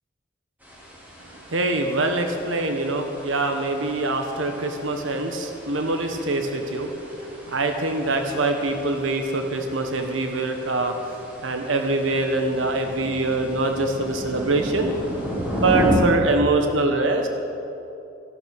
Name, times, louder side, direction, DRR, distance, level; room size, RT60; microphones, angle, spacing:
sound 1, 0.6-16.0, equal, 10° right, 3.3 m, -34 dB
voice 1, 1.5-14.9 15.5-17.3, right 2 dB, 85° right, 5 dB, 1.2 m, -24 dB
14.0 x 12.0 x 6.7 m, 2.8 s
head